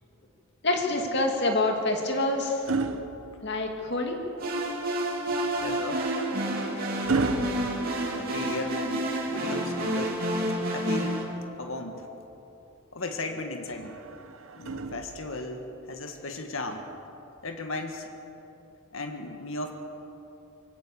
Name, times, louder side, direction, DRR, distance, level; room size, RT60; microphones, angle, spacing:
voice 1, 0.6-2.7 3.4-4.2, left 2 dB, 55° left, 2 dB, 2.6 m, -26 dB
sound 1, 1.5-4.0 5.6-8.8 10.5-11.7 13.7-15.5 16.7-16.9, right 3 dB, 90° right, 1.1 m, -35 dB
sound 2, 4.4-11.2, right 1 dB, 45° right, 3.4 m, -29 dB
voice 2, 5.6-6.1 7.2-7.7 8.1-10.2 10.7-11.2 11.6-12.1 12.9-14.0 14.5-16.9 17.4-18.1 18.9-19.7, left 2 dB, 75° left, 5 dB, 1.8 m, -36 dB
24.0 x 17.0 x 7.1 m, 2.9 s
head